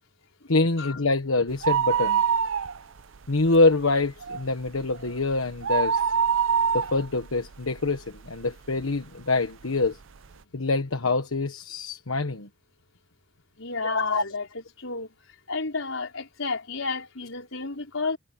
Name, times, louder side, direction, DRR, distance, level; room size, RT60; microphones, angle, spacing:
voice 1, 0.5-2.2 3.3-6.0 6.7-10.0 10.5-12.5 13.8-14.2, left 3 dB, 90° left, 1.3 m, -25 dB
sound 1, 1.5-3.2 3.5-3.6 4.0-8.4 9.0-9.1 9.8-9.9 10.2-10.3, right 7 dB, 65° right, 0.6 m, -25 dB
voice 2, 13.6-14.5 14.8-15.1 15.5-18.2, left 4 dB, 75° left, 4.6 m, -31 dB
head